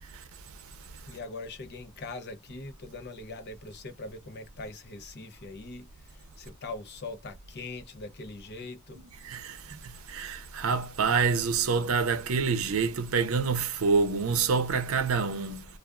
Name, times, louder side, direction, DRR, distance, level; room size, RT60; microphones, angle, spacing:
voice 1, 1.1-9.0, left 3 dB, 50° left, 0.7 m, -42 dB
voice 2, 9.2-9.6 10.1-15.7, right 5 dB, 75° right, 0.6 m, -26 dB
2.4 x 2.4 x 2.3 m
head